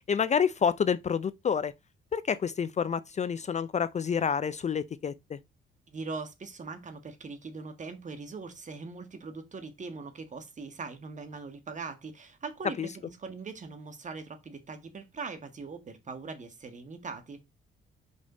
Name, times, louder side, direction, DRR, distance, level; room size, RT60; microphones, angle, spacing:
voice 1, 0.1-1.7 2.1-5.4 12.8-12.9, left 7 dB, 35° left, 0.5 m, -28 dB
voice 2, 5.9-17.4, right 4 dB, 40° right, 1.7 m, -41 dB
5.3 x 5.1 x 4.0 m
cardioid pair, 90°, 20 cm